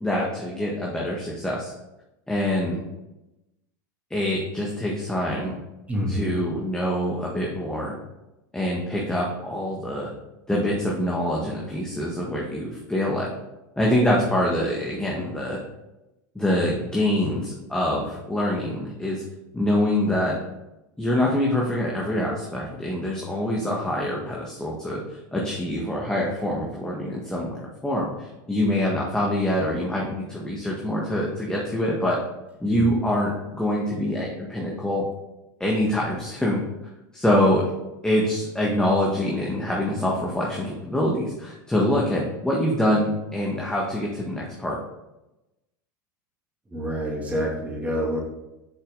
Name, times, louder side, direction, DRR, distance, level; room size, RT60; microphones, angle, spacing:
voice 1, 0.0-1.7 2.3-2.8 4.1-5.5 6.1-7.9 8.5-10.1 10.5-13.3 13.8-15.6 16.3-19.2 19.5-20.3 21.0-25.0 25.3-32.2 32.6-35.0 35.6-36.6 37.1-37.7 38.0-44.8, left 1 dB, 5° left, -3 dB, 1.6 m, -25 dB
voice 2, 5.9-6.3 32.7-32.8 46.7-48.2, equal, 15° right, -3 dB, 2.6 m, -27 dB
7.0 x 5.5 x 3.9 m, 0.96 s
hypercardioid pair, 95°, 11 cm